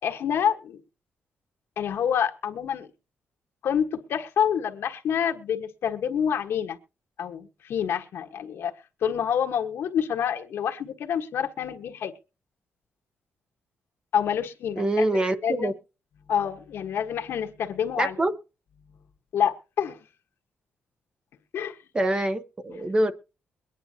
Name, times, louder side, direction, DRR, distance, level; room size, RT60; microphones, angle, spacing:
voice 1, 0.0-0.8 1.8-2.9 3.6-6.8 7.2-8.7 9.0-12.1 14.1-15.7 16.3-18.1 19.3-20.0 21.5-21.8, left 8 dB, 75° left, 1.4 m, -27 dB
voice 2, 14.8-15.7 18.0-18.3 21.9-23.1, right 1 dB, 25° right, 1.0 m, -25 dB
23.0 x 10.0 x 2.9 m
cardioid pair, 125°, 4 cm